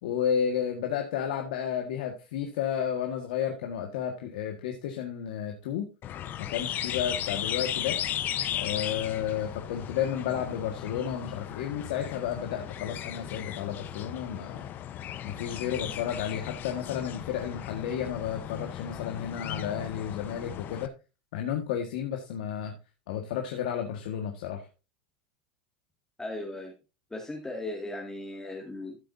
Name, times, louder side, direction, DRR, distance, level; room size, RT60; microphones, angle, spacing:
voice 1, 0.0-5.9 6.4-8.0 8.5-14.6 15.2-20.9 21.3-22.7 23.1-24.7, left 9 dB, 70° left, 1.8 m, -32 dB
sound 1, 6.0-20.9, left 11 dB, 40° left, 1.0 m, -36 dB
voice 2, 26.2-26.8 27.1-29.0, left 2 dB, 10° left, 2.3 m, -37 dB
14.0 x 7.8 x 2.8 m
hypercardioid pair, 90°, 5 cm